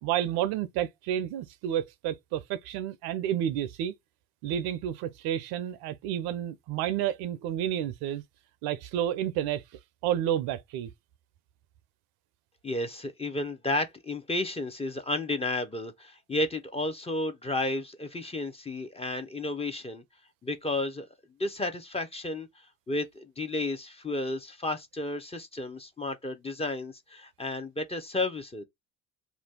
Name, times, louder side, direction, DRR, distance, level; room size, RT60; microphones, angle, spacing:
voice 1, 0.0-3.9 4.4-8.2 8.6-9.6 10.0-10.9, right 11 dB, 65° right, 0.5 m, -30 dB
voice 2, 12.6-20.0 20.4-21.1 21.4-28.6, left 2 dB, 15° left, 0.6 m, -32 dB
2.5 x 2.3 x 3.4 m
hypercardioid pair, 60°, 41 cm